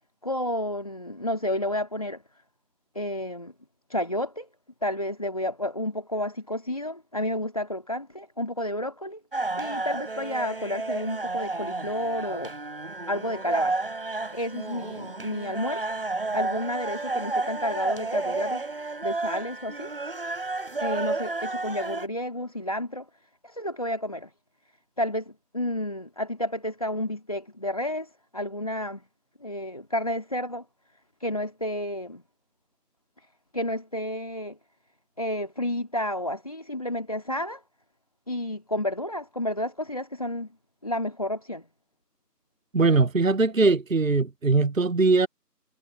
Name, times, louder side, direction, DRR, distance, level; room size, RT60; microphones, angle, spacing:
voice 1, 0.2-2.2 2.9-3.5 3.9-4.5 4.8-9.2 9.6-12.5 13.1-13.8 14.3-15.9 16.3-18.6 19.0-19.9 20.8-23.1 23.4-24.3 25.0-29.0 29.4-30.6 31.2-32.2 33.5-34.6 35.2-37.6 38.3-40.5 40.8-41.7, left 1 dB, 20° left, 2.1 m, -31 dB
sound 1, 9.3-22.1, right 3 dB, 35° right, 5.1 m, -31 dB
voice 2, 42.7-45.3, right 3 dB, 55° right, 0.8 m, -21 dB
figure-of-eight pair, 175°, 49 cm